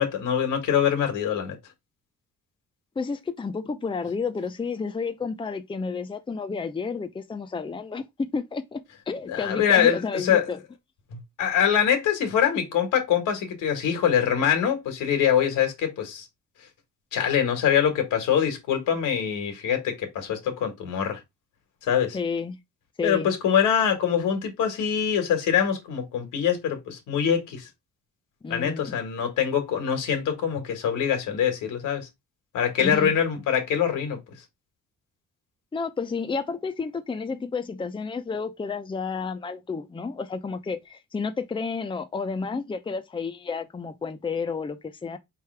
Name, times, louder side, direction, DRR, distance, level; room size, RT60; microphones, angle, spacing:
voice 1, 0.0-1.6 9.3-10.5 11.4-16.3 17.1-21.2 21.8-22.2 23.0-27.7 28.5-32.1 32.5-34.2, left 8 dB, 85° left, 1.6 m, -24 dB
voice 2, 3.0-10.6 22.1-22.6 23.0-23.3 28.4-29.0 32.8-33.1 35.7-45.2, left 5 dB, 15° left, 0.6 m, -31 dB
4.5 x 3.4 x 3.2 m
cardioid pair, 90°, 30 cm